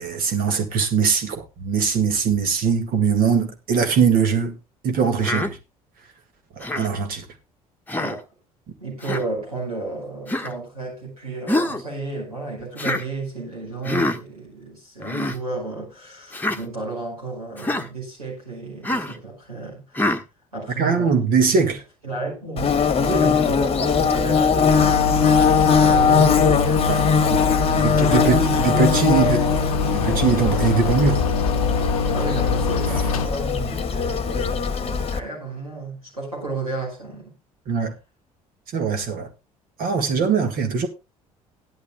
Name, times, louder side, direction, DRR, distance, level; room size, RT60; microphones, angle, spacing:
voice 1, 0.0-4.6 4.8-5.6 6.6-7.2 20.8-21.8 26.9-27.4 27.7-29.4 29.9-31.2 37.7-37.9 38.7-39.3 39.8-40.9, right 5 dB, 50° right, 1.8 m, -21 dB
Human voice, 5.2-5.5 6.6-6.9 7.9-8.2 9.0-9.2 10.3-10.5 11.5-11.8 12.8-13.0 13.8-14.2 15.0-15.4 16.3-16.6 17.6-17.9 18.8-19.2 19.9-20.2, left 1 dB, 10° left, 1.3 m, -25 dB
voice 2, 8.8-20.0 20.5-21.2 21.5-21.7 22.0-25.0 25.7-26.8 27.9-29.6 32.1-37.3, right 3 dB, 85° right, 5.3 m, -32 dB
Bird / Buzz, 22.6-35.2, left 6 dB, 35° left, 1.2 m, -20 dB
sound 1, 24.7-33.3, left 4 dB, 80° left, 0.7 m, -25 dB
17.0 x 11.5 x 2.3 m
figure-of-eight pair, 55°, 18 cm